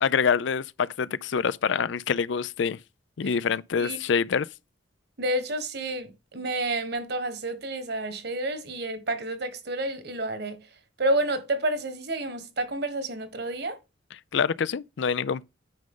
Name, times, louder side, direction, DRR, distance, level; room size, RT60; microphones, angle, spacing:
voice 1, 0.0-2.8 3.2-4.5 14.3-15.4, left 6 dB, 65° left, 0.4 m, -26 dB
voice 2, 5.2-10.6 11.0-13.8, right 1 dB, 55° right, 1.5 m, -29 dB
9.3 x 5.3 x 3.7 m
head